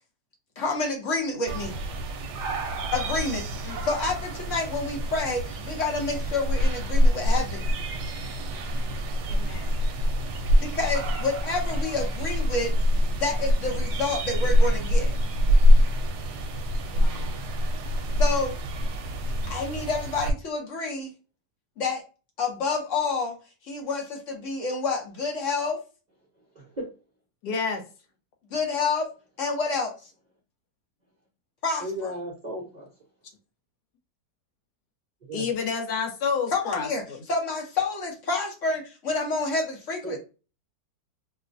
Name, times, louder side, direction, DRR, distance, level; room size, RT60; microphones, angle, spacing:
voice 1, 0.6-1.8 2.9-3.4 3.8-7.7 10.6-12.7 13.1-15.1 18.2-18.5 19.5-21.1 21.8-22.0 22.4-23.4 23.7-25.8 28.5-29.1 29.4-29.9 31.6-32.1 36.5-37.0 37.3-40.2, left 3 dB, 55° left, 1 dB, 1.0 m, -28 dB
sound 1, 1.5-20.3, equal, 75° right, 1.1 m, -25 dB
voice 2, 9.3-9.8 16.9-17.5 27.4-27.8 35.3-37.2, left 5 dB, 75° left, 4 dB, 1.3 m, -30 dB
voice 3, 26.5-26.8 31.8-32.9 35.3-35.4 40.0-40.2, equal, 40° right, -4 dB, 0.6 m, -35 dB
4.5 x 2.1 x 2.5 m, 0.33 s
omnidirectional pair, 1.8 m